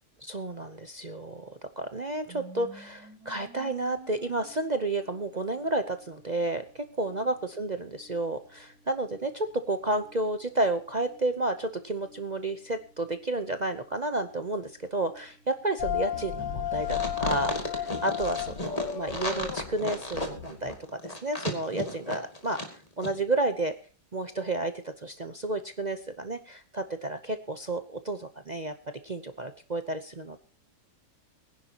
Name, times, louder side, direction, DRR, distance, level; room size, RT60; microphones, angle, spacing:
voice 1, 0.2-22.6 23.0-23.7 24.1-28.7 29.0-30.4, right 2 dB, 40° right, 8 dB, 0.6 m, -31 dB
sound 1, 2.3-18.2, right 1 dB, 70° right, 3.4 m, -55 dB
sound 2, 15.8-20.8, left 9 dB, 80° left, 1.9 m, -33 dB
sound 3, 16.8-22.7 23.0-23.1, left 1 dB, 20° left, 2.5 m, -34 dB
23.0 x 10.5 x 2.9 m, 0.37 s
omnidirectional pair, 1.9 m